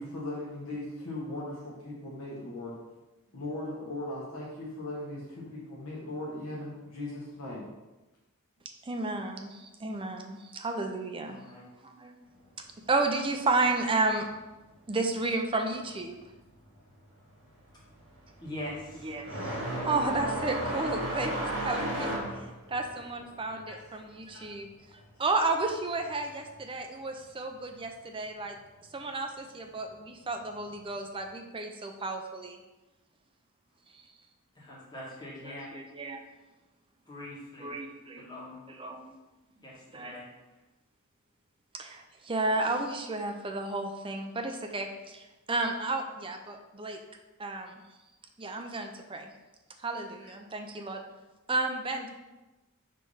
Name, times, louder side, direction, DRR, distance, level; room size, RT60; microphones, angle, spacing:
voice 1, 0.0-2.7 3.3-7.7 24.3-24.5 50.2-50.3, left 1 dB, 65° left, -6 dB, 1.3 m, -38 dB
voice 2, 8.8-11.4 11.8-12.2 12.9-14.3 14.9-16.2 19.0-22.1 22.7-28.6 28.9-32.6 33.9-34.1 35.4-36.2 37.6-38.3 38.7-39.1 39.9-40.2 41.7-47.0 47.4-47.8 48.4-49.3 49.8-51.0 51.5-52.1, right 2 dB, 25° right, 4 dB, 0.5 m, -32 dB
voice 3, 11.2-11.7 18.4-19.1 34.5-35.7 37.0-37.7 38.1-38.6 39.5-40.2, left 1 dB, 20° left, -6 dB, 1.8 m, -42 dB
sound 1, 16.7-17.0 17.3-25.6 25.9-26.9 27.9-28.0 28.8-28.9 30.7-30.8, right 1 dB, 55° right, 2.0 m, -35 dB
5.2 x 3.4 x 5.5 m, 1.1 s
head